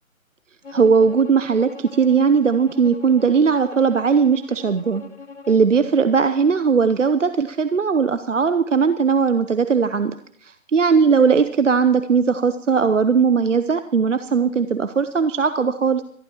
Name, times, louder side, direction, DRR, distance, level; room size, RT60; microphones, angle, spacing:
Bowed string instrument, 0.6-5.7, left 4 dB, 55° left, 1.3 m, -41 dB
voice 1, 0.7-5.0 5.5-16.0, right 5 dB, 60° right, 11 dB, 0.8 m, -18 dB
25.5 x 12.0 x 3.0 m, 0.63 s
figure-of-eight pair, 150°, 42 cm